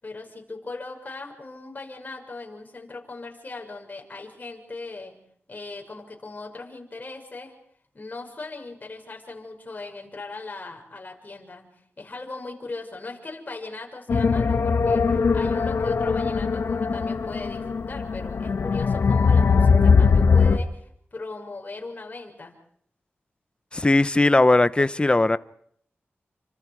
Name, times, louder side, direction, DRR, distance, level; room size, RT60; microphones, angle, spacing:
voice 1, 0.0-5.2 5.5-7.6 7.9-11.7 12.0-22.5, left 3 dB, 40° left, 6.0 m, -38 dB
sound 1, 14.1-20.6, left 5 dB, 75° left, 1.6 m, -20 dB
voice 2, 23.7-25.4, left 2 dB, 25° left, 0.9 m, -18 dB
29.5 x 25.5 x 4.9 m
wide cardioid pair, 85°, 4 cm